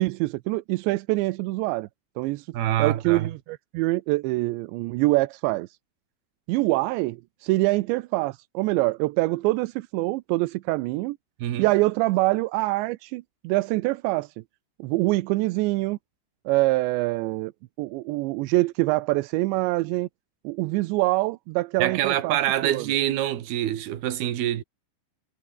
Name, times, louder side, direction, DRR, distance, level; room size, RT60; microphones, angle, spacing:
voice 1, 0.0-1.9 2.2-2.5 2.8-5.7 6.5-11.2 11.6-14.3 14.8-16.0 16.5-17.5 17.8-20.1 20.4-22.4 22.6-22.9, right 21 dB, 85° right, 2.7 m, -25 dB
voice 2, 2.5-3.3 11.4-11.7 21.8-24.6, right 12 dB, 60° right, 3.4 m, -25 dB
omnidirectional pair, 5.7 m